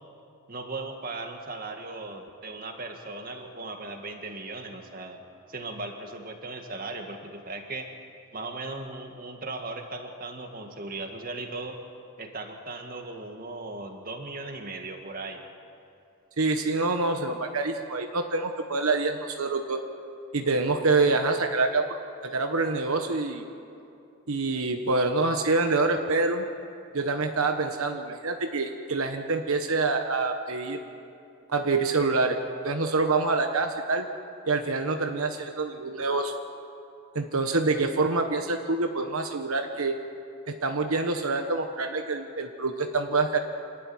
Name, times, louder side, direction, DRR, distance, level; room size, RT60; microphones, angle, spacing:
voice 1, 0.5-5.2 5.5-7.9 8.3-11.8 12.2-15.4, right 2 dB, 40° right, 4 dB, 2.0 m, -37 dB
voice 2, 16.4-19.8 20.3-21.8 22.2-23.4 24.3-26.4 26.9-30.8 31.5-34.1 34.5-36.3 37.1-40.0 40.5-43.4, right 3 dB, 75° right, 5 dB, 1.2 m, -26 dB
27.5 x 12.5 x 9.5 m, 2.7 s
head